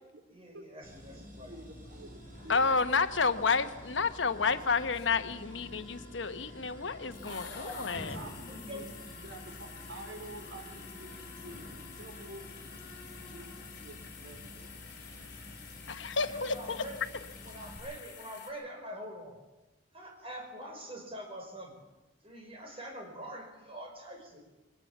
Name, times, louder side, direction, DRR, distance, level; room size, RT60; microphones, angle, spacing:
voice 1, 0.3-1.5 7.2-8.9 16.1-17.1 17.4-19.4 19.9-21.7 22.2-24.4, equal, 30° right, 2 dB, 5.3 m, -45 dB
sound 1, 0.8-17.8, equal, 45° right, 6.2 m, -49 dB
voice 2, 1.1-2.7 8.1-9.6 9.9-12.7 12.9-15.9, right 1 dB, 90° right, 5 dB, 3.7 m, -49 dB
sound 2, 1.8-14.5, left 2 dB, 40° left, 6.3 m, -56 dB
voice 3, 2.5-8.2 15.9-16.8, left 4 dB, 80° left, 10 dB, 1.1 m, -30 dB
sound 3, 4.9-5.6 7.1-18.5, left 8 dB, 60° left, 3.6 m, -50 dB
22.0 x 18.5 x 7.3 m, 1.1 s
head